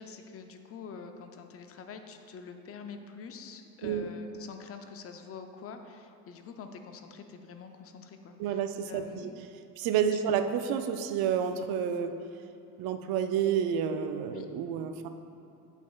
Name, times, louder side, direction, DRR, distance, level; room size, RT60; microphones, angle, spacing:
voice 1, 0.0-9.4 10.1-10.3 14.3-14.5, left 5 dB, 35° left, 6 dB, 0.5 m, -46 dB
voice 2, 8.4-9.3 9.8-12.1 12.8-15.1, right 8 dB, 70° right, 8 dB, 0.5 m, -29 dB
8.2 x 5.2 x 2.3 m, 2.6 s
cardioid pair, 105°, 39 cm